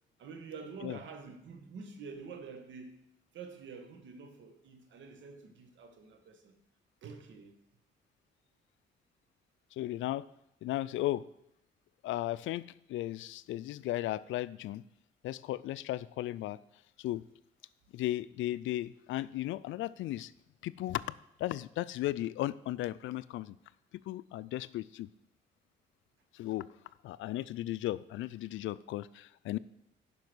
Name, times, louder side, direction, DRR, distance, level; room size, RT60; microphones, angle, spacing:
voice 1, 0.2-6.6 7.0-7.6, right 5 dB, 70° right, 1.6 m, -47 dB
voice 2, 9.7-10.3 10.6-11.3 12.0-14.8 15.2-16.6 17.0-17.2 17.9-20.3 20.6-21.0 21.4-23.6 24.1-25.1 26.3-26.7 27.0-29.6, left 15 dB, 80° left, 0.4 m, -35 dB
10.5 x 5.4 x 6.2 m
cardioid pair, 90°, 20 cm